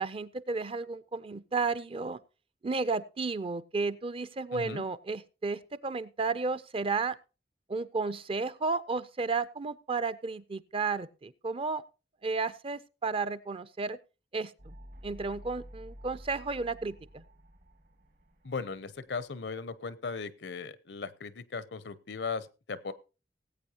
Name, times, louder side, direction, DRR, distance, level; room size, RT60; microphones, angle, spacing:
voice 1, 0.0-2.2 2.6-7.2 7.7-11.8 12.2-14.0 14.3-14.7 15.0-17.2, right 4 dB, 30° right, 16 dB, 0.4 m, -33 dB
voice 2, 4.5-4.8 18.4-22.9, left 4 dB, 85° left, 16 dB, 0.7 m, -37 dB
sound 1, 14.6-19.7, equal, 60° right, 2.0 m, -51 dB
19.0 x 8.4 x 2.9 m, 0.31 s
head